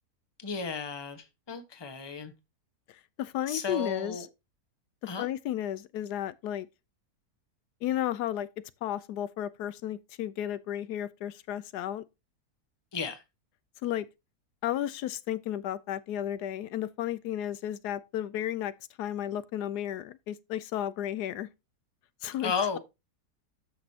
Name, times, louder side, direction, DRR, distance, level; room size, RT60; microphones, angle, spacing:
voice 1, 0.4-2.3 3.5-4.3 5.1-5.3 12.9-13.2 22.4-22.8, left 5 dB, 20° left, 1.0 m, -34 dB
voice 2, 3.2-4.3 5.0-6.7 7.8-8.5 8.8-12.0 13.8-14.1 14.6-18.7 19.0-21.5 22.2-22.8, left 11 dB, 80° left, 1.2 m, -33 dB
13.0 x 6.1 x 2.8 m
omnidirectional pair, 1.7 m